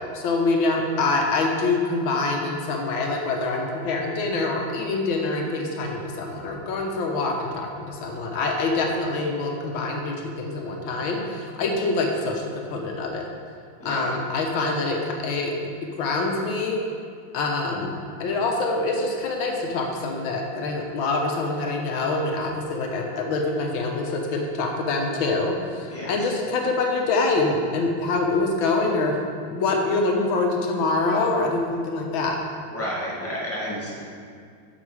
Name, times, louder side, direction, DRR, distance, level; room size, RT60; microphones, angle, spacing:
voice 1, 0.0-13.3 13.9-15.5 16.0-16.8 17.3-29.2 29.5-32.4, left 3 dB, 85° left, 1 dB, 1.8 m, -25 dB
voice 2, 13.8-14.2 25.9-26.3 32.7-34.0, equal, 5° left, -6 dB, 1.7 m, -31 dB
9.6 x 6.7 x 4.8 m, 2.2 s
omnidirectional pair, 2.1 m